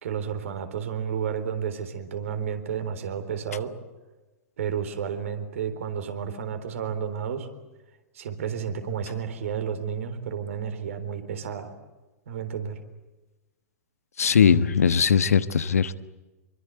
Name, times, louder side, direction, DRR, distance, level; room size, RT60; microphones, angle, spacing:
voice 1, 0.0-3.7 4.6-7.5 8.1-11.7 12.3-12.8, right 7 dB, 55° right, 8 dB, 3.9 m, -31 dB
voice 2, 14.2-15.9, left 7 dB, 65° left, 14 dB, 1.2 m, -20 dB
26.5 x 23.5 x 8.2 m, 1.1 s
figure-of-eight pair, 105°, 9 cm